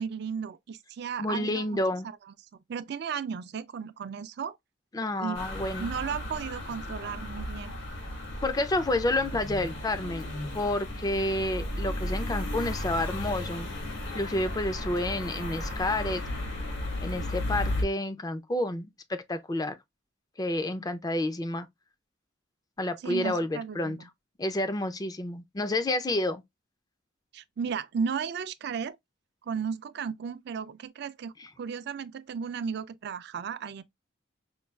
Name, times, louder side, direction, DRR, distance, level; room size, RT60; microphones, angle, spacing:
voice 1, 0.0-1.7 2.7-4.6 5.2-5.4 5.8-7.7 23.0-24.1 27.3-29.0 29.4-33.8, right 6 dB, 55° right, 0.4 m, -34 dB
voice 2, 1.2-2.1 4.9-5.9 8.4-13.7 14.1-16.2 17.0-19.7 20.4-21.7 22.8-24.0 24.4-26.4, left 1 dB, 20° left, 0.4 m, -29 dB
sound 1, 5.3-17.8, left 1 dB, 80° left, 1.8 m, -34 dB
5.2 x 2.3 x 2.2 m
head